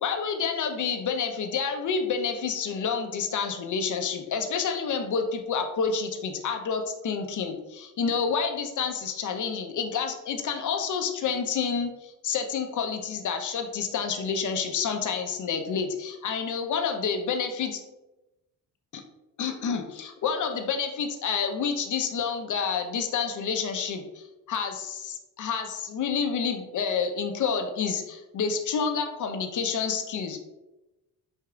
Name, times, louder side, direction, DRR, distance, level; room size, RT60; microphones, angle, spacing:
voice 1, 0.0-17.8 18.9-19.0 19.4-30.4, left 6 dB, 45° left, 5 dB, 0.7 m, -29 dB
4.9 x 2.7 x 2.4 m, 0.98 s
supercardioid pair, 65°, 41 cm